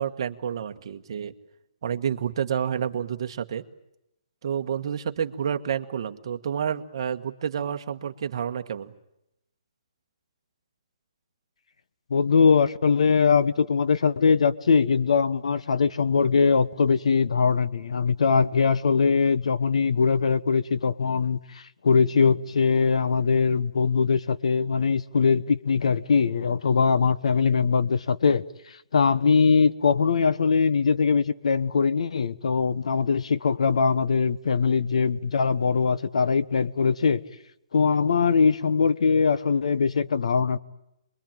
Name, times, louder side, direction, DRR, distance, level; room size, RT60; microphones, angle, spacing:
voice 1, 0.0-1.3 1.8-3.6 4.4-8.9, right 8 dB, 45° right, 6 dB, 1.4 m, -29 dB
voice 2, 12.1-28.4 28.9-37.2 37.7-40.6, left 5 dB, 70° left, 15 dB, 1.1 m, -22 dB
27.5 x 22.5 x 9.0 m, 0.84 s
hypercardioid pair, 170°, 4 cm